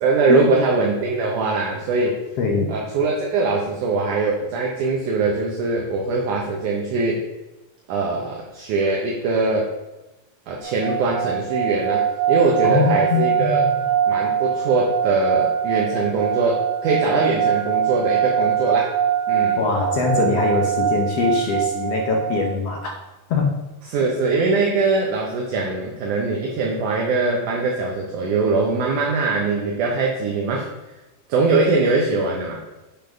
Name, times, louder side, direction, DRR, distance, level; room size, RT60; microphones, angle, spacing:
voice 1, 0.0-2.2 2.7-7.2 7.9-9.7 10.5-13.6 14.1-18.9 19.3-19.6 23.9-30.7 31.3-32.6, right 3 dB, 70° right, -1 dB, 2.2 m, -22 dB
voice 2, 2.4-2.7 12.6-13.7 19.6-22.9 23.3-23.6, left 4 dB, 75° left, 1 dB, 1.5 m, -22 dB
sound 1, 10.6-22.5, right 9 dB, 35° left, 1.0 m, -23 dB
8.0 x 5.3 x 5.1 m, 1.1 s
omnidirectional pair, 4.0 m